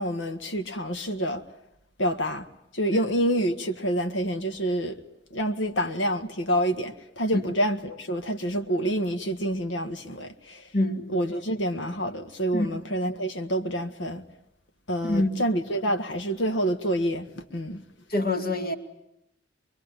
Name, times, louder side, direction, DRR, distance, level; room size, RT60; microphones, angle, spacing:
voice 1, 0.0-1.4 2.0-2.5 2.7-5.0 5.3-10.7 11.1-14.2 14.9-17.8, equal, 80° left, 1.7 m, -27 dB
voice 2, 10.7-11.1 12.5-12.7 15.0-15.4 18.1-18.7, left 1 dB, 55° left, 2.5 m, -25 dB
23.5 x 23.5 x 9.8 m
head